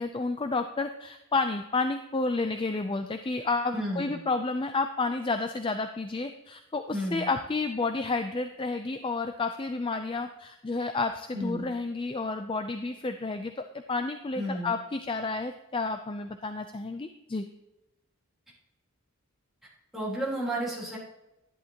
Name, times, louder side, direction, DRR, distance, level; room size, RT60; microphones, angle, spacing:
voice 1, 0.0-17.5, left 3 dB, 20° left, 7 dB, 0.4 m, -31 dB
voice 2, 3.7-4.1 6.9-7.3 11.3-11.7 14.4-14.7 19.9-21.0, right 1 dB, ahead, -7 dB, 3.7 m, -32 dB
11.0 x 10.5 x 2.9 m, 0.93 s
head